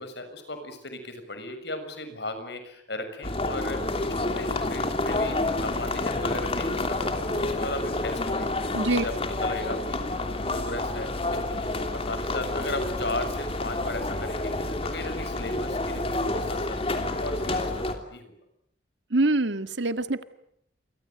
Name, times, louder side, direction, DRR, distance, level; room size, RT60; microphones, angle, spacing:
voice 1, 0.0-8.5 8.8-9.1 9.4-18.3, left 2 dB, 65° left, 8 dB, 6.7 m, -36 dB
sound 1, 3.2-17.9, left 2 dB, 30° left, 3.2 m, -29 dB
voice 2, 8.7-9.0 19.1-20.2, right 2 dB, 75° right, 11 dB, 1.7 m, -24 dB
28.5 x 24.5 x 7.9 m, 0.75 s
head